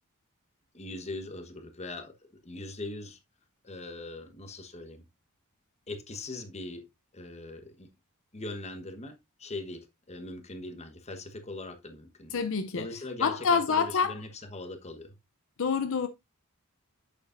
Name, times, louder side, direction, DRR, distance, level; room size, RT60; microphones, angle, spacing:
voice 1, 0.7-3.2 3.6-5.0 5.9-6.9 7.1-7.9 8.3-12.4 12.7-15.2, left 2 dB, 30° left, 1.1 m, -41 dB
voice 2, 12.3-12.9 13.2-14.2 15.6-16.1, left 5 dB, 65° left, 0.5 m, -27 dB
8.3 x 6.7 x 2.5 m
head